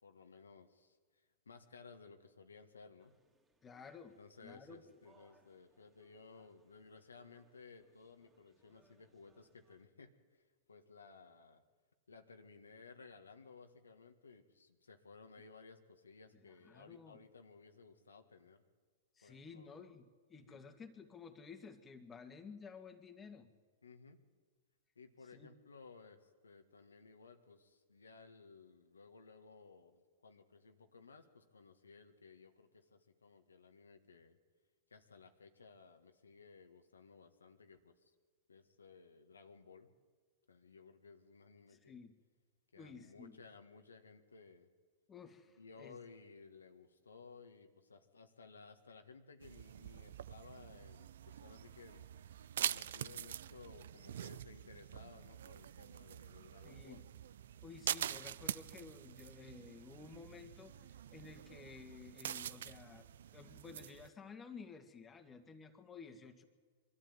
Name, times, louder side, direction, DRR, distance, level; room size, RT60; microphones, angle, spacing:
voice 1, 0.0-3.2 4.2-11.6 12.1-18.6 19.2-19.9 20.4-20.6 23.8-24.2 24.9-34.4 34.9-38.1 38.5-39.9 40.5-42.0 42.7-44.7 45.6-52.1 52.7-57.0, left 4 dB, 90° left, 6 dB, 1.7 m, -58 dB
sound 1, 3.0-9.9, right 3 dB, 15° right, 2.8 m, -73 dB
voice 2, 3.6-4.8 16.3-17.2 19.1-23.5 25.3-25.6 41.7-42.2 42.8-43.4 45.1-46.0 56.6-57.0 57.6-66.4, left 5 dB, 20° left, 5 dB, 2.1 m, -54 dB
sound 2, 49.4-64.1, right 10 dB, 70° right, 0.5 m, -45 dB
23.0 x 13.0 x 9.3 m, 1.5 s
hypercardioid pair, 110°, 0 cm